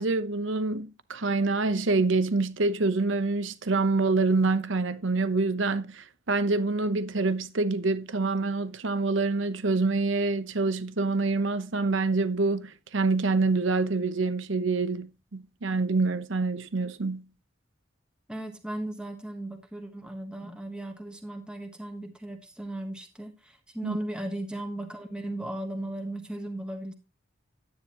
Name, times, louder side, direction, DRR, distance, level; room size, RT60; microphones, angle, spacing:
voice 1, 0.0-17.3 23.8-24.0, right 3 dB, 70° right, 0.9 m, -26 dB
voice 2, 18.3-26.9, right 1 dB, 5° right, 1.3 m, -36 dB
10.5 x 9.3 x 3.0 m
head